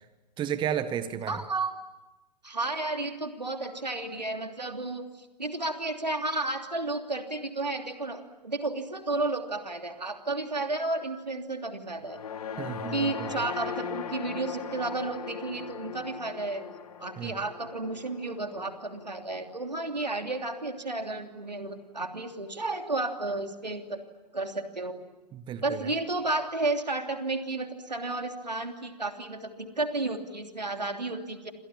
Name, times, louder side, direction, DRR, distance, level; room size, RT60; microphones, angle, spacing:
voice 1, 0.4-1.4 12.6-13.3 17.2-17.3 25.3-25.8, right 9 dB, 20° right, 11 dB, 1.6 m, -32 dB
voice 2, 1.3-1.7 2.4-12.2 12.9-16.7 17.0-24.0 24.3-25.0 25.6-31.5, right 2 dB, 85° right, 5 dB, 3.1 m, -32 dB
sound 1, 12.0-20.4, left 7 dB, 65° left, 2.9 m, -40 dB
29.0 x 26.5 x 7.3 m, 1.1 s
figure-of-eight pair, 110°, 21 cm